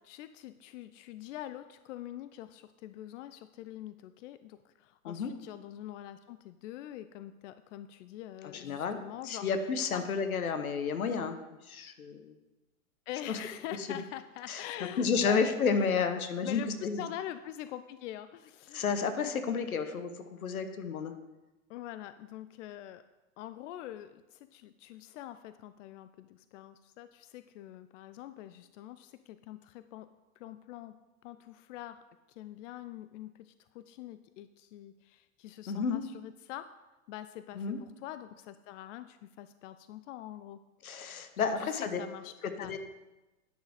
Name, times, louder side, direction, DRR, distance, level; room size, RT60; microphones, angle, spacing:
voice 1, 0.0-9.5 9.9-10.1 13.1-15.4 15.7-18.9 21.7-23.0 23.4-30.1 30.4-30.9 31.2-32.0 32.3-36.7 37.1-40.6 41.6-42.8, left 12 dB, 60° left, 12 dB, 0.6 m, -44 dB
voice 2, 8.5-9.0 9.3-11.4 11.6-12.3 13.3-13.4 14.5-14.6 15.0-17.1 18.7-20.1 20.4-21.1 35.7-36.0 37.5-37.8 40.8-42.0 42.4-42.8, left 5 dB, 90° left, 9 dB, 1.1 m, -31 dB
10.0 x 6.4 x 4.9 m, 1.1 s
hypercardioid pair, 100°, 42 cm